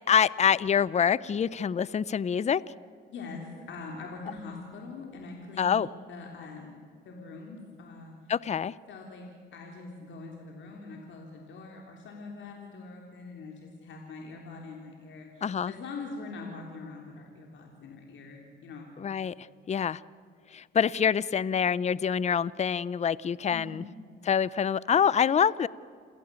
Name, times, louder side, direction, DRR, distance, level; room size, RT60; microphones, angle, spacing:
voice 1, 0.0-2.6 5.6-5.9 8.3-8.7 15.4-15.7 19.0-20.0 20.5-23.8 24.2-25.7, left 7 dB, 35° left, 20 dB, 0.6 m, -26 dB
voice 2, 3.1-6.8 7.1-8.3 8.9-9.3 9.5-18.9 23.5-23.8, left 3 dB, 70° left, 1 dB, 3.5 m, -43 dB
28.5 x 16.5 x 8.4 m, 2.2 s
cardioid pair, 90°, 20 cm